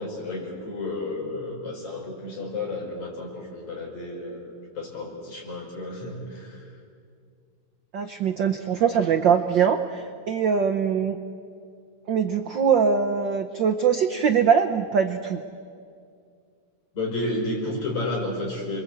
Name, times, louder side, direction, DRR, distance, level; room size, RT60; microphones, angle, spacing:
voice 1, 0.0-6.7 16.9-18.8, left 2 dB, 70° left, 0 dB, 6.9 m, -32 dB
voice 2, 7.9-11.2 12.1-15.4, right 7 dB, 75° right, 7 dB, 1.0 m, -22 dB
29.0 x 23.0 x 8.2 m, 2.3 s
omnidirectional pair, 3.4 m